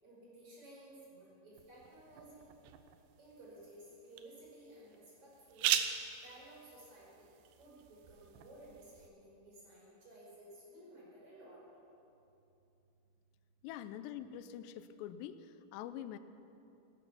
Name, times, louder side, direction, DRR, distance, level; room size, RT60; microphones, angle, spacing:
voice 1, 0.0-2.5 3.2-5.7 6.2-7.3 7.6-11.6, right 1 dB, 35° right, -5 dB, 5.4 m, -56 dB
sound 1, 1.6-9.1, right 10 dB, 90° right, 2.8 m, -41 dB
voice 2, 13.6-16.2, left 10 dB, 85° left, 12 dB, 2.8 m, -45 dB
17.5 x 12.5 x 5.9 m, 2.8 s
omnidirectional pair, 4.9 m